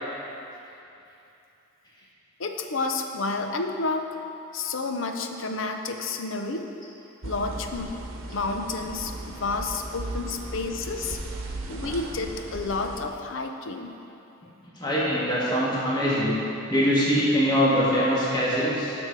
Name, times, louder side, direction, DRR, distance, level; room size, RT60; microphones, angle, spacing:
voice 1, 2.4-4.1 4.5-6.7 7.2-7.9 8.3-11.2 11.7-13.9, left 3 dB, 60° left, 5 dB, 0.6 m, -30 dB
sound 1, 7.2-13.1, right 2 dB, 70° right, 0.9 m, -37 dB
voice 2, 14.8-16.4 16.7-18.9, equal, 20° left, -8 dB, 1.6 m, -23 dB
9.9 x 6.1 x 4.6 m, 2.8 s
head